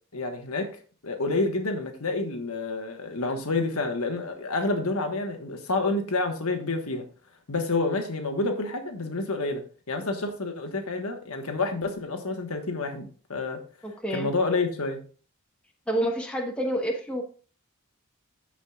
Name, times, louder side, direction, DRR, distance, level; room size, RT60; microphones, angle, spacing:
voice 1, 0.1-0.7 1.0-7.0 7.5-13.0 13.3-13.6 14.1-15.0, left 3 dB, 90° left, 5 dB, 1.4 m, -28 dB
voice 2, 13.8-14.3 15.9-17.2, right 1 dB, 5° left, 0 dB, 1.2 m, -28 dB
13.5 x 5.0 x 2.4 m, 0.40 s
head